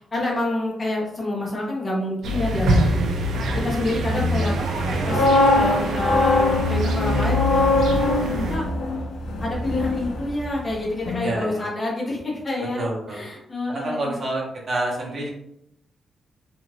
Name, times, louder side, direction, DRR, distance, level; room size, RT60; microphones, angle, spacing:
voice 1, 0.0-3.0 3.5-4.6 5.1-5.2 5.5-8.6 9.4-14.2, left 2 dB, 20° left, -4 dB, 0.8 m, -27 dB
sound 1, 2.2-8.6, equal, 80° right, 0.4 m, -24 dB
sound 2, 4.8-10.8 11.0-11.3, left 2 dB, 80° left, 0.4 m, -22 dB
voice 2, 11.2-11.6 12.7-13.2 13.7-15.3, right 1 dB, 40° right, -3 dB, 0.9 m, -28 dB
2.5 x 2.4 x 3.2 m, 0.78 s
wide cardioid pair, 160°, 0 cm